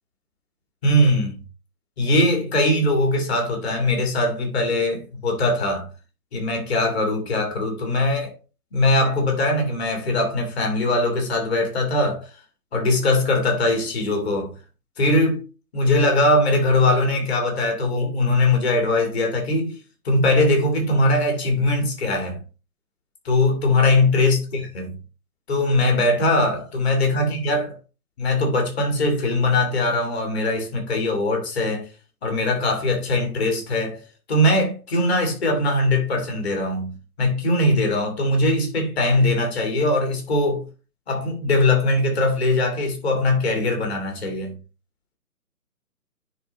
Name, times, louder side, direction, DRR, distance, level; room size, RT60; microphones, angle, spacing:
voice 1, 0.8-1.4 2.0-5.9 6.3-8.4 8.7-12.3 12.7-14.5 15.0-15.4 15.7-19.8 20.0-22.4 23.2-24.8 25.5-27.8 28.2-31.9 32.2-34.0 34.3-40.6 41.1-44.5, left 2 dB, 40° left, 2.3 m, -21 dB
9.8 x 3.4 x 2.9 m
figure-of-eight pair, 140°, 46 cm